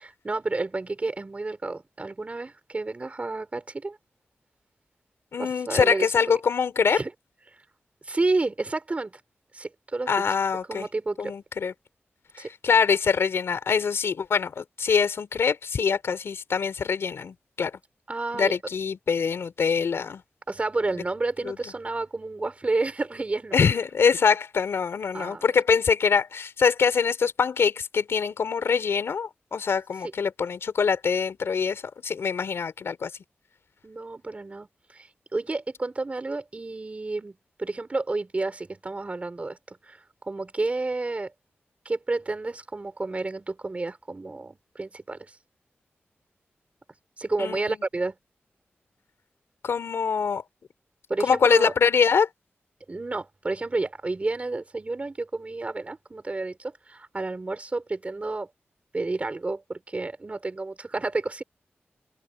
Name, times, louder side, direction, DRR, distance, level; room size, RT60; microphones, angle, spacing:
voice 1, 0.0-4.0 5.4-6.1 6.9-7.1 8.0-9.2 9.5-10.2 10.7-11.3 12.4-12.5 18.1-18.5 20.5-23.6 25.1-25.4 33.8-41.3 41.9-45.3 47.2-48.2 51.1-51.7 52.9-58.5 58.9-61.4, right 3 dB, 30° right, 5.4 m, -30 dB
voice 2, 5.3-7.0 10.1-10.9 11.2-11.7 12.3-17.8 18.3-20.2 21.4-21.6 23.5-33.1 47.4-47.8 49.6-50.4 51.2-52.3, left 6 dB, 90° left, 4.2 m, -24 dB
open air
wide cardioid pair, 115°, 4 cm